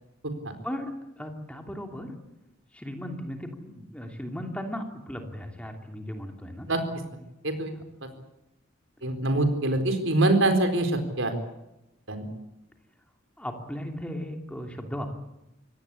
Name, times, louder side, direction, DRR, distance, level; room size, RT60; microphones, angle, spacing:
voice 1, 0.6-2.2 2.7-6.7 13.4-15.1, equal, 5° left, 4 dB, 2.9 m, -36 dB
voice 2, 9.0-11.3 12.1-12.2, right 2 dB, 70° right, 7 dB, 4.3 m, -24 dB
24.5 x 18.0 x 8.5 m, 0.90 s
head